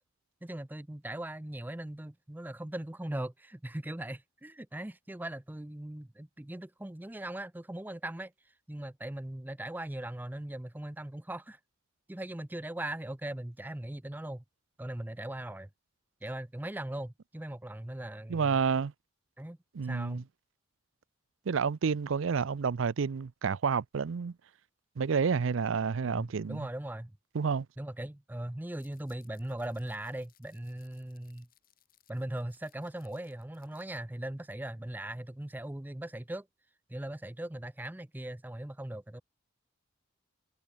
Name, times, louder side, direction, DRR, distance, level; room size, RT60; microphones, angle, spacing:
voice 1, 0.4-8.3 8.7-11.6 12.1-14.4 14.8-15.7 16.2-18.6 19.4-19.6 19.8-20.3 26.0-27.1 27.8-31.5 32.1-36.5 36.9-39.2, right 1 dB, 10° right, 0.5 m, -39 dB
voice 2, 18.3-18.9 19.7-20.2 21.5-24.3 25.0-26.7 27.3-27.7, right 6 dB, 70° right, 0.5 m, -29 dB
sound 1, 28.7-34.0, left 13 dB, 45° left, 7.0 m, -68 dB
head